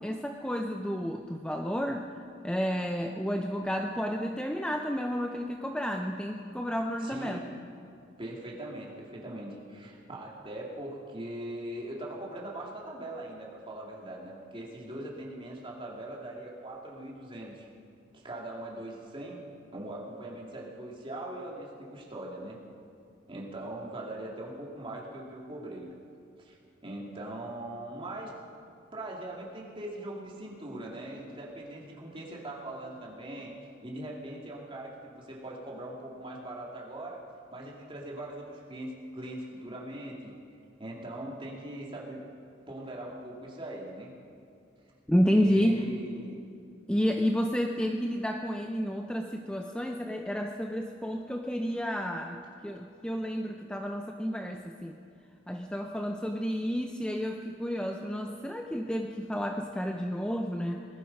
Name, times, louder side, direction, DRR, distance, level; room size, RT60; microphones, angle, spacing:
voice 1, 0.0-2.1 2.4-7.4 45.1-45.8 46.9-55.0 55.5-60.9, equal, 5° left, 3 dB, 0.5 m, -30 dB
voice 2, 7.0-7.5 8.2-17.7 18.1-19.4 19.7-22.6 23.3-25.9 26.4-28.3 28.9-33.5 33.8-37.2 37.5-40.4 40.8-42.2 42.7-44.1 45.3-46.4, right 1 dB, 25° right, -3 dB, 2.5 m, -41 dB
20.0 x 13.0 x 5.4 m, 2.4 s
head